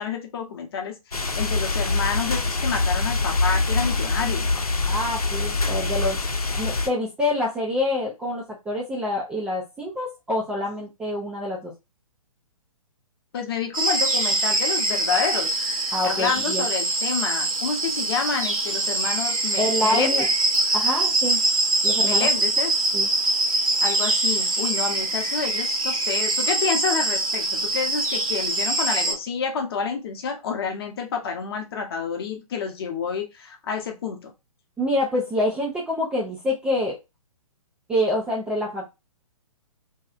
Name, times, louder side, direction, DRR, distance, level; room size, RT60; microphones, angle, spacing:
voice 1, 0.0-4.5 13.3-15.6 16.0-20.3 22.0-22.8 23.8-34.3, left 6 dB, 40° left, 4 dB, 0.8 m, -29 dB
sound 1, 1.1-6.9, left 3 dB, 80° left, 0.7 m, -24 dB
voice 2, 4.9-6.2 6.6-11.7 15.9-16.7 19.6-20.3 20.7-21.4 21.8-22.3 22.9-23.1 34.8-37.0 37.9-38.8, left 1 dB, 5° right, -5 dB, 0.4 m, -26 dB
sound 2, 13.7-29.1, right 2 dB, 70° right, 1.0 m, -24 dB
3.0 x 2.8 x 2.4 m, 0.24 s
figure-of-eight pair, 125°, 19 cm